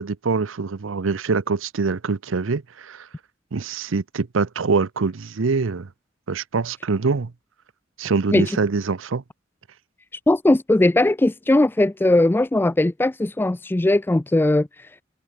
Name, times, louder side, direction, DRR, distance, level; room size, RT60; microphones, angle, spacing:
voice 1, 0.0-3.1 3.5-5.9 6.3-7.3 8.0-9.2, right 4 dB, 85° right, 0.7 m, -24 dB
voice 2, 10.3-15.0, left 1 dB, 10° left, 0.3 m, -19 dB
head